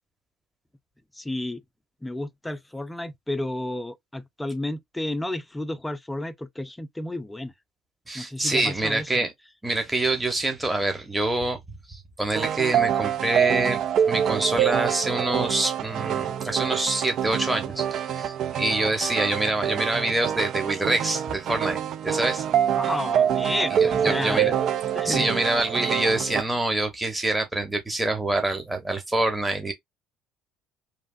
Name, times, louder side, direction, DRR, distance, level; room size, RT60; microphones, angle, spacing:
voice 1, 1.2-1.6 2.0-7.5 8.1-9.0 22.7-24.6 24.9-25.3, left 1 dB, 10° left, 0.5 m, -31 dB
voice 2, 8.1-9.3 9.6-11.6 11.9-13.8 14.1-22.4 23.7-24.6 25.0-29.7, right 2 dB, 10° right, 1.0 m, -26 dB
sound 1, 12.3-26.4, right 9 dB, 55° right, 0.4 m, -26 dB
3.2 x 2.4 x 2.4 m
hypercardioid pair, 70°, 0 cm